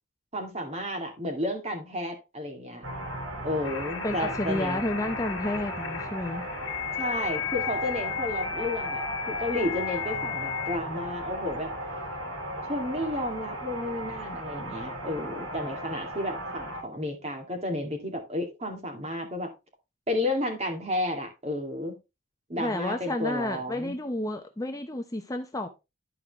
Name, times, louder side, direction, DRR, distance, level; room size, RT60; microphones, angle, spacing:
voice 1, 0.3-2.8 3.4-4.8 7.0-11.7 12.6-19.5 20.1-22.0 22.5-24.0, left 1 dB, 30° right, 2.3 m, -32 dB
sound 1, 2.8-16.8, equal, 75° right, 2.4 m, -36 dB
sound 2, 3.6-10.8, left 9 dB, 70° left, 1.7 m, -35 dB
voice 2, 4.0-6.5 22.6-25.7, left 1 dB, 15° left, 0.7 m, -31 dB
12.0 x 4.7 x 3.5 m
head